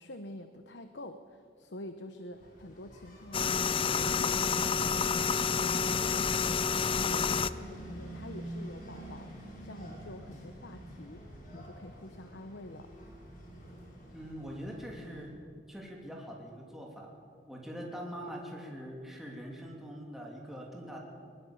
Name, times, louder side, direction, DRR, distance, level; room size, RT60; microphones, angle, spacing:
voice 1, 0.0-12.9, left 1 dB, 70° left, 8 dB, 1.0 m, -47 dB
Engine, 2.3-15.3, right 1 dB, 50° left, 6.2 m, -47 dB
sound 1, 3.3-7.5, left 6 dB, 30° left, 0.5 m, -29 dB
voice 2, 14.1-15.3 15.7-17.1 17.5-21.0, equal, ahead, -2 dB, 3.0 m, -43 dB
21.0 x 20.0 x 7.2 m, 2.3 s
head